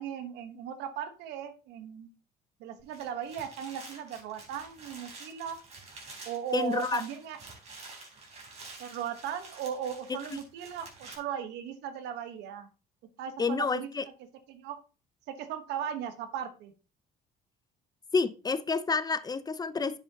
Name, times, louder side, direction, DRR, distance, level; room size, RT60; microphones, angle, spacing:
voice 1, 0.0-2.1 2.6-5.6 6.2-7.4 8.8-12.7 13.2-13.9 14.5-14.8 15.3-16.7, right 8 dB, 90° right, 1.2 m, -37 dB
sound 1, 2.8-11.2, right 3 dB, 40° right, 3.8 m, -49 dB
voice 2, 6.5-7.0 13.4-14.1 18.1-20.0, left 4 dB, 25° left, 0.6 m, -29 dB
10.0 x 7.3 x 2.9 m
cardioid pair, 110°, 17 cm